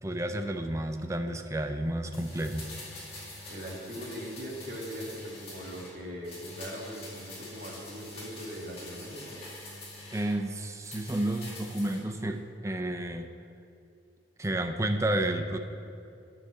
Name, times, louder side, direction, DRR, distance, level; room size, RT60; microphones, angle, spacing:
voice 1, 0.0-2.7 10.1-13.3 14.4-15.6, right 1 dB, 15° right, 6 dB, 0.5 m, -31 dB
sound 1, 2.1-6.0 6.2-10.4 10.8-12.0 12.3-12.4, left 1 dB, 35° left, 2.2 m, -45 dB
voice 2, 3.5-9.4, equal, 50° right, -3 dB, 1.9 m, -40 dB
9.3 x 5.8 x 6.6 m, 2.6 s
head